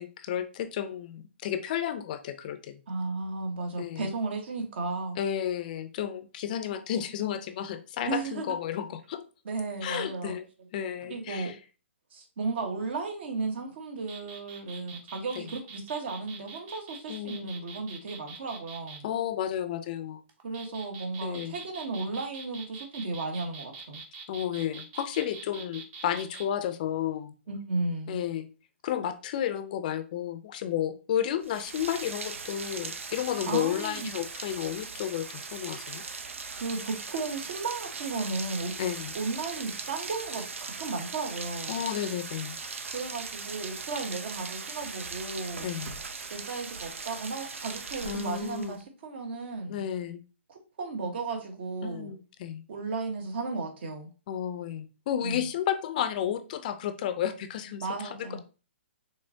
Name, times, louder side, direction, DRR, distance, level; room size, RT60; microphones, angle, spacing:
voice 1, 0.0-2.8 3.8-4.1 5.2-9.3 9.8-10.4 10.7-11.5 15.4-15.5 17.1-17.5 19.0-20.2 21.2-21.5 24.3-27.3 28.1-28.5 28.8-36.0 38.8-39.1 41.7-42.6 45.6-46.0 48.0-48.8 49.7-50.2 51.8-52.6 54.3-57.8 58.2-58.4, left 10 dB, 40° left, 0.5 m, -32 dB
voice 2, 2.9-5.2 8.1-8.4 9.4-10.7 11.1-11.5 12.1-19.1 20.4-24.0 27.5-28.2 33.5-34.1 36.5-38.7 39.1-41.8 42.9-45.7 46.3-49.9 50.5-52.1 52.7-54.1 55.2-55.5 57.8-58.4, right 3 dB, 55° right, 1.4 m, -34 dB
sound 1, 14.0-19.0 20.3-26.5, right 4 dB, 25° right, 0.8 m, -45 dB
Rain, 31.4-48.8, right 4 dB, 90° right, 0.6 m, -39 dB
5.5 x 3.3 x 2.7 m
hypercardioid pair, 155°, 7 cm